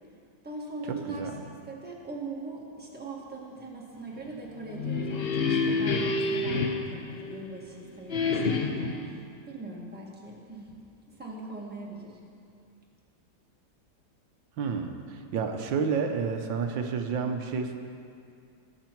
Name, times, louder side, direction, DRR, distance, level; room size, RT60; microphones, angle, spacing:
voice 1, 0.4-10.7 11.1-12.2, right 2 dB, 5° right, -3 dB, 1.4 m, -41 dB
sound 1, 4.6-7.6 8.1-9.1, left 3 dB, 55° left, 0.6 m, -28 dB
voice 2, 14.6-17.8, right 5 dB, 80° right, 5 dB, 1.5 m, -30 dB
19.5 x 6.8 x 4.5 m, 2.4 s
omnidirectional pair, 2.0 m